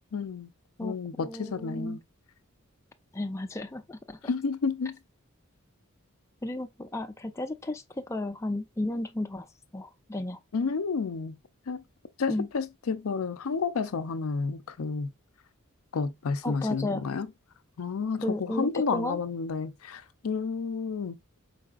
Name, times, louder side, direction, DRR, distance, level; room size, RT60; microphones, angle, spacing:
voice 1, 0.1-0.5 0.8-2.0 4.2-5.0 10.5-11.4 11.7-11.8 12.2-15.1 15.9-17.3 17.8-21.2, left 5 dB, 80° left, 0.5 m, -31 dB
voice 2, 0.8-2.0 3.1-4.3 6.4-9.5 9.7-10.4 12.3-12.5 16.4-17.1 18.2-19.2, left 1 dB, 15° left, 0.4 m, -33 dB
4.7 x 4.1 x 2.4 m
head